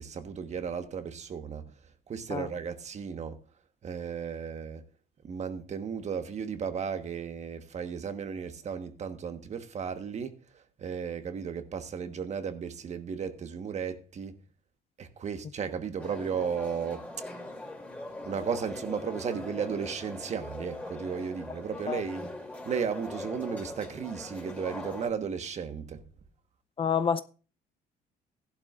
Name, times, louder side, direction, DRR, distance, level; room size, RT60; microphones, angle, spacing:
voice 1, 0.0-1.7 2.1-3.4 3.8-4.8 5.2-14.4 15.0-17.2 18.2-22.3 22.6-26.0, right 6 dB, 40° right, 1.3 m, -35 dB
sound 1, 16.0-25.1, left 1 dB, 10° left, 2.8 m, -41 dB
voice 2, 26.8-27.2, left 7 dB, 30° left, 0.6 m, -27 dB
15.5 x 11.5 x 2.5 m
cardioid pair, 110°, 17 cm